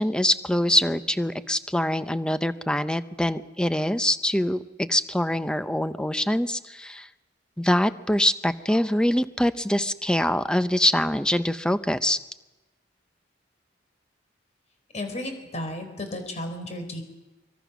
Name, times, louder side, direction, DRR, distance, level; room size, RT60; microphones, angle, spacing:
voice 1, 0.0-7.1 7.6-12.2, left 1 dB, 5° left, 11 dB, 0.7 m, -24 dB
voice 2, 14.9-17.0, left 1 dB, 35° left, 6 dB, 4.3 m, -33 dB
24.0 x 23.5 x 6.2 m, 1.1 s
head